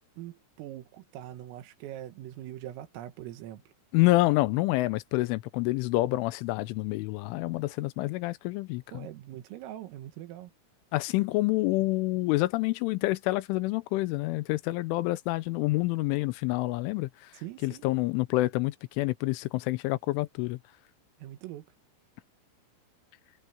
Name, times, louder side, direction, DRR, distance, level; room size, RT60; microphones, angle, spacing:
voice 1, 0.2-3.7 8.9-10.5 17.3-17.9 21.2-21.7, right 13 dB, 85° right, 4.2 m, -42 dB
voice 2, 3.9-9.1 10.9-17.1 17.6-20.6, left 19 dB, 80° left, 3.1 m, -27 dB
omnidirectional pair, 5.8 m